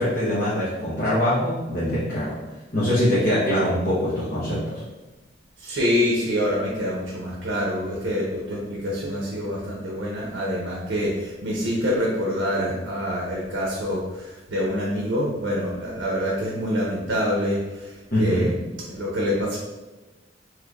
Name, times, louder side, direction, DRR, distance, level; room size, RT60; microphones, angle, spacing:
voice 1, 0.0-2.4 2.7-4.8 18.1-18.5, equal, 50° left, -9 dB, 0.9 m, -23 dB
voice 2, 5.6-19.6, equal, 65° right, -4 dB, 0.7 m, -26 dB
3.2 x 3.0 x 2.4 m, 1.1 s
head